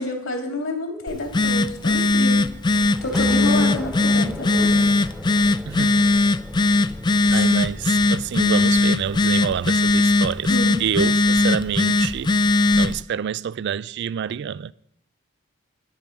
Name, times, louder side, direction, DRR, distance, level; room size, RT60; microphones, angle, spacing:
voice 1, 0.0-2.4 2.7-4.8 7.2-7.4 10.5-10.8, left 2 dB, 75° left, 3.0 m, -29 dB
Telephone, 1.1-13.0, left 2 dB, 20° left, 0.4 m, -19 dB
sound 1, 2.6-9.0, equal, 5° right, 1.0 m, -37 dB
voice 2, 5.7-6.1 7.3-10.5 10.8-12.3 12.7-14.7, right 8 dB, 55° right, 0.3 m, -27 dB
10.5 x 9.9 x 5.4 m
head